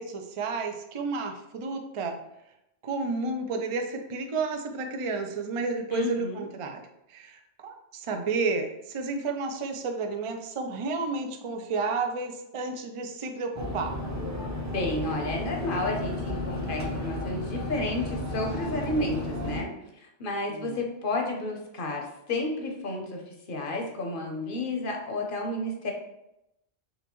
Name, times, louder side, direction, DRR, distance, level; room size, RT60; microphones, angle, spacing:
voice 1, 0.0-2.2 2.8-6.8 7.1-13.9 20.5-20.8, right 3 dB, 55° right, 4 dB, 0.3 m, -31 dB
voice 2, 5.9-6.4 14.7-19.7 20.0-25.9, left 2 dB, 55° left, 2 dB, 0.8 m, -31 dB
sound 1, 13.5-19.6, left 1 dB, 20° right, 0.6 m, -33 dB
4.0 x 3.3 x 3.0 m, 0.85 s
omnidirectional pair, 1.2 m